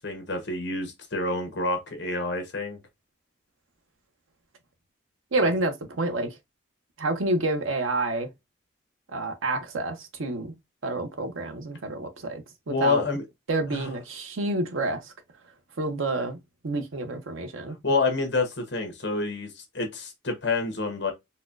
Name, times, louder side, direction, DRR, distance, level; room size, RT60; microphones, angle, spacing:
voice 1, 0.0-2.8 5.4-5.5 12.7-13.3 13.7-13.9 17.8-21.1, left 3 dB, 60° left, 1.0 m, -28 dB
voice 2, 5.3-6.4 7.0-8.3 9.1-10.5 10.8-13.0 13.5-15.1 15.8-16.4 16.6-17.8, right 2 dB, 85° right, 0.7 m, -28 dB
4.1 x 2.2 x 2.4 m
head